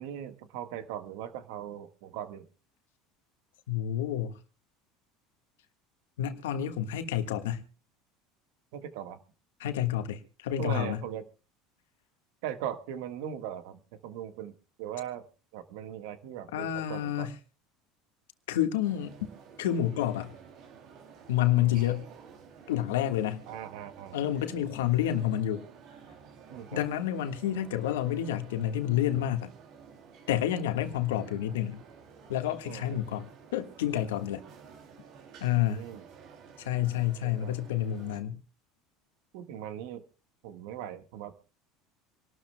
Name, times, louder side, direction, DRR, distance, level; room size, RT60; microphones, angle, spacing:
voice 1, 0.0-2.5 8.7-9.2 10.6-11.2 12.4-15.2 15.5-17.3 23.5-24.6 26.5-26.8 32.6-32.9 35.5-36.0 37.2-37.6 39.3-40.0 40.4-41.3, right 10 dB, 75° right, 1.5 m, -39 dB
voice 2, 3.7-4.4 6.2-7.6 9.6-11.0 16.5-17.3 18.5-19.3 19.6-20.3 21.3-22.1 22.7-23.4 24.1-25.6 26.7-29.5 30.3-31.8 32.3-33.3 33.5-34.4 35.4-35.8 36.6-38.4, left 11 dB, 90° left, 1.5 m, -29 dB
sound 1, 18.8-38.2, right 6 dB, 55° right, 2.8 m, -52 dB
26.5 x 12.5 x 2.2 m
supercardioid pair, 95°, 0 cm